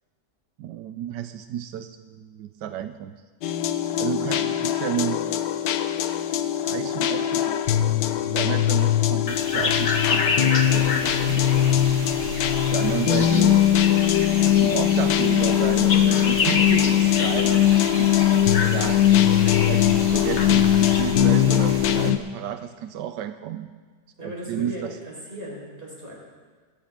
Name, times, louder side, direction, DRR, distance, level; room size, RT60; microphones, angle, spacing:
voice 1, 0.6-3.1 4.0-5.4 6.7-7.6 8.2-11.4 12.7-13.6 14.4-17.7 17.9-18.1 18.7-19.0 19.7-23.7 24.2-25.0, right 10 dB, 85° right, 9 dB, 1.2 m, -32 dB
sound 1, 3.4-22.2, left 11 dB, 85° left, 1.3 m, -21 dB
sound 2, 9.3-21.0, left 4 dB, 45° left, 1.2 m, -29 dB
sound 3, 10.6-22.1, right 3 dB, 70° right, 1.6 m, -36 dB
voice 2, 24.2-26.1, equal, 30° right, -4 dB, 4.9 m, -37 dB
21.5 x 12.5 x 3.7 m, 1.5 s
omnidirectional pair, 1.8 m